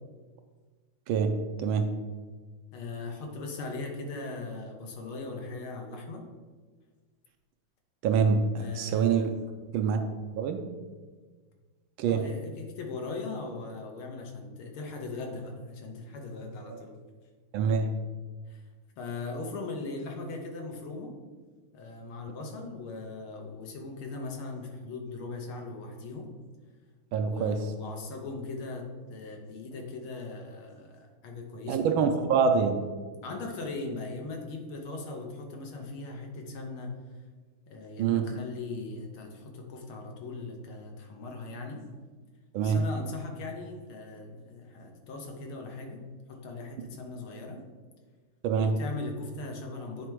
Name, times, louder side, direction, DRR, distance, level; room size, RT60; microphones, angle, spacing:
voice 1, 1.6-2.0 8.0-9.3 9.7-10.0 10.3-10.6 12.0-12.2 17.5-17.9 27.1-27.6 31.7-32.8 38.0-38.2 42.5-42.8 48.4-48.7, right 6 dB, 75° right, 6 dB, 1.3 m, -25 dB
voice 2, 2.7-6.3 8.6-9.3 12.1-17.0 18.5-18.6 19.0-21.2 21.7-26.3 27.2-31.9 33.2-37.0 37.7-41.9 42.6-46.0 46.3-47.6 48.6-50.1, left 3 dB, 75° left, 2 dB, 1.8 m, -39 dB
8.6 x 3.4 x 4.5 m, 1.4 s
omnidirectional pair, 2.4 m